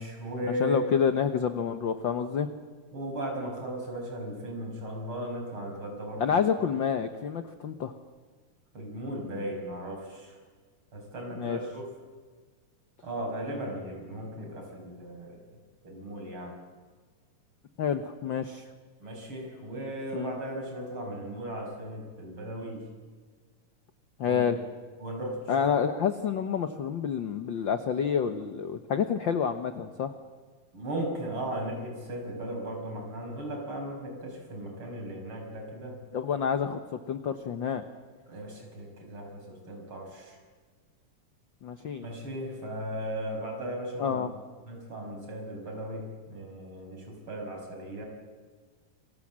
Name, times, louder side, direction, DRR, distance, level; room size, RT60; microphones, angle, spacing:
voice 1, 0.0-0.8 2.9-6.2 8.7-10.4 10.9-11.9 13.0-15.4 15.8-16.5 19.0-22.8 24.2-24.5 25.0-25.4 30.7-36.0 38.3-40.4 42.0-44.2 44.7-48.1, right 1 dB, 40° right, 2 dB, 6.5 m, -36 dB
voice 2, 0.6-2.5 6.2-7.9 11.3-11.6 17.8-18.7 20.1-20.4 24.2-24.6 25.5-30.1 36.1-37.8 41.6-42.1 44.0-44.3, left 7 dB, 80° left, 9 dB, 1.0 m, -28 dB
28.5 x 22.5 x 7.5 m, 1.5 s
omnidirectional pair, 3.6 m